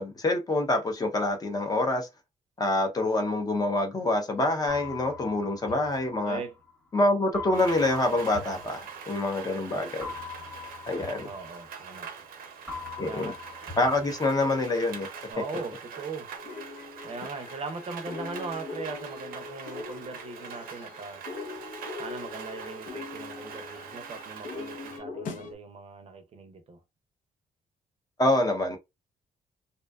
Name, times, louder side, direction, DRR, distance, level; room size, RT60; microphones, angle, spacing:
voice 1, 0.0-2.1 2.6-6.4 6.9-10.1 10.9-11.3 13.0-13.3 13.8-15.1 28.2-28.8, left 2 dB, 25° left, 0.6 m, -26 dB
sound 1, 4.7-6.7 7.3-9.4 10.0-12.3 12.7-14.7, left 5 dB, ahead, 0.9 m, -42 dB
voice 2, 6.2-6.5 11.2-12.1 13.0-13.4 15.3-16.3 17.0-21.2 22.0-26.8, right 4 dB, 45° right, 0.5 m, -39 dB
Rain, 7.5-25.0, right 6 dB, 90° right, 0.6 m, -43 dB
sound 2, 16.4-25.5, left 4 dB, 65° left, 0.6 m, -41 dB
2.6 x 2.2 x 2.3 m
cardioid pair, 130°, 15 cm